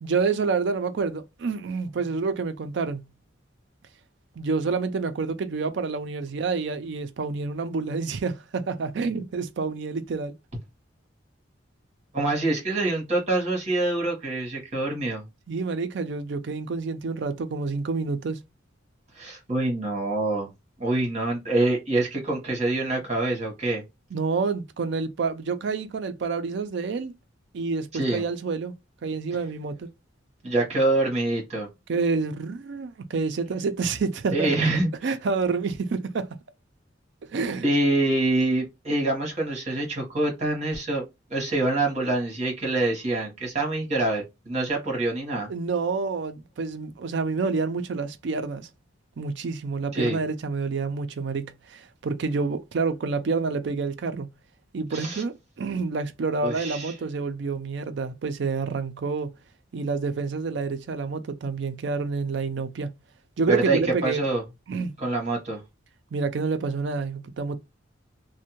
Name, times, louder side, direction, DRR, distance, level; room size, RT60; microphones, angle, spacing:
voice 1, 0.0-3.0 4.4-10.3 15.5-18.4 24.1-27.1 27.5-28.7 29.0-29.9 31.9-34.7 35.0-36.3 37.3-37.7 45.5-48.7 49.2-54.3 54.7-59.3 59.7-62.9 63.4-64.2 64.7-64.9 66.1-67.6, right 4 dB, 60° right, 0.4 m, -28 dB
voice 2, 12.1-15.2 19.1-20.5 20.8-23.8 27.9-28.2 30.4-31.7 34.3-34.9 37.6-41.0 41.3-45.5 49.9-50.2 54.9-55.2 56.4-56.9 63.5-64.4 65.0-65.6, right 2 dB, 35° right, 1.1 m, -25 dB
2.6 x 2.1 x 2.9 m
head